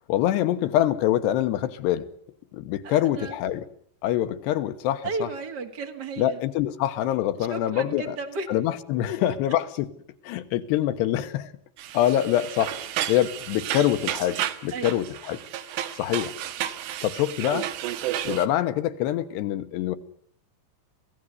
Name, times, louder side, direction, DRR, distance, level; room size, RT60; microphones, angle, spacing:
voice 1, 0.1-2.0 2.5-3.6 4.0-5.3 6.2-8.2 8.5-9.9 10.2-11.5 11.9-12.8 13.1-14.4 14.6-15.4 16.0-16.3 17.0-17.7 18.2-20.0, left 12 dB, 80° left, 3.2 m, -25 dB
voice 2, 2.8-3.4 5.0-6.4 7.5-8.5 9.4-9.5 14.7-14.9, right 4 dB, 60° right, 1.1 m, -34 dB
sound 1, 11.8-18.5, right 12 dB, 85° right, 3.4 m, -32 dB
25.0 x 16.5 x 8.1 m
omnidirectional pair, 4.9 m